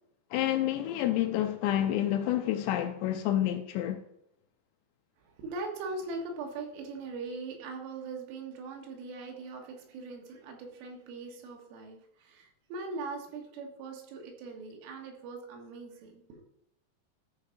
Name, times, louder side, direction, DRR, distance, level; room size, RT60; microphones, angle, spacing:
voice 1, 0.3-4.0, left 12 dB, 85° left, 2.6 m, -29 dB
voice 2, 5.2-16.4, right 3 dB, 85° right, 4.0 m, -41 dB
13.5 x 4.7 x 5.2 m
omnidirectional pair, 5.4 m